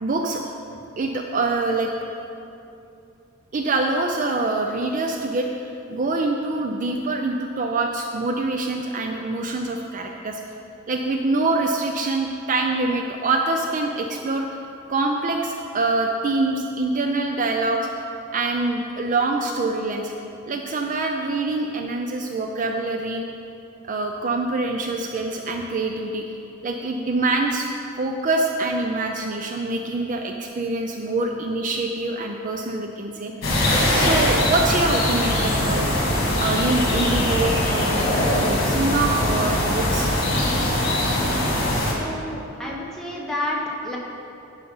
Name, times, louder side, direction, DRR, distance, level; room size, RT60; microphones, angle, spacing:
voice 1, 0.0-0.4 1.0-1.9 3.5-10.4 10.9-14.6 14.9-17.9 18.3-20.1 20.5-23.2 23.8-26.2 26.6-27.7 28.0-33.3 34.0-35.9 36.4-40.1, right 2 dB, 40° right, 3 dB, 0.5 m, -25 dB
sound 1, 33.4-41.9, left 1 dB, 50° left, 1.9 m, -21 dB
voice 2, 41.8-44.0, left 1 dB, ahead, -4 dB, 1.3 m, -30 dB
10.0 x 5.7 x 5.5 m, 2.7 s
head